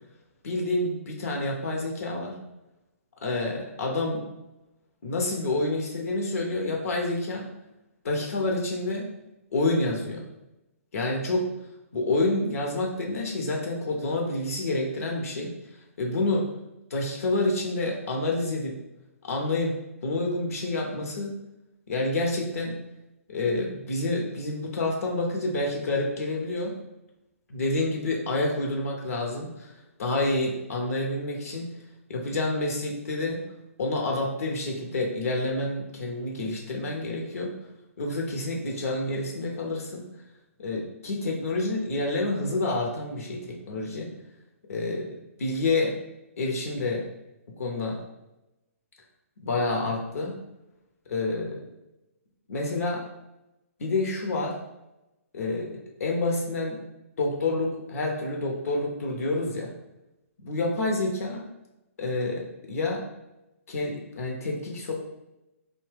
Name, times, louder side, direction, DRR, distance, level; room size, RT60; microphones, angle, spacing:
voice 1, 0.4-2.3 3.2-4.2 5.0-7.5 8.0-9.1 9.5-10.3 10.9-11.5 11.9-15.5 16.0-16.4 16.9-18.7 19.2-19.7 20.0-21.3 21.9-22.8 23.3-26.7 27.5-29.7 30.0-31.7 32.1-33.4 33.8-37.5 38.0-40.0 40.6-44.1 44.7-45.1 45.4-45.9 46.4-47.1 47.6-48.0 49.4-50.4 51.1-51.6 52.5-53.0 53.8-54.5 55.3-56.8 57.2-59.7 60.4-61.4 62.0-63.0 63.7-64.9, left 2 dB, 75° left, 0 dB, 0.6 m, -28 dB
2.7 x 2.1 x 3.2 m, 0.96 s
hypercardioid pair, 140°, 8 cm